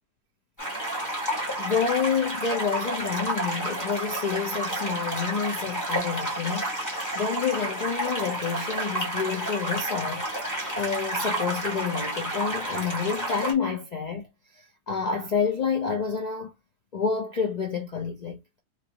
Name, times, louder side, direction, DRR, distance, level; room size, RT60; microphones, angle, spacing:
sound 1, 0.6-13.5, right 1 dB, 10° left, 1.2 m, -30 dB
voice 1, 1.6-6.7 7.1-10.2 10.7-14.3 14.5-16.5 16.9-18.4, left 6 dB, 75° left, 0.3 m, -28 dB
3.1 x 2.7 x 2.8 m
omnidirectional pair, 1.7 m